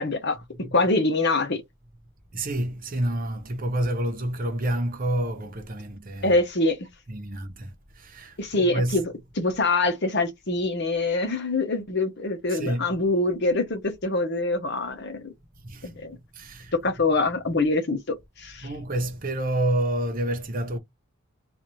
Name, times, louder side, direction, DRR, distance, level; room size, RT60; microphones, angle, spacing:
voice 1, 0.0-1.6 6.2-6.8 8.4-15.3 15.8-16.2 16.8-18.7, left 2 dB, 50° left, 0.9 m, -25 dB
voice 2, 2.3-6.4 7.1-9.1 12.5-13.0 15.6-16.0 16.3-17.0 18.6-20.8, right 1 dB, 40° right, 0.9 m, -29 dB
4.0 x 2.6 x 3.1 m
head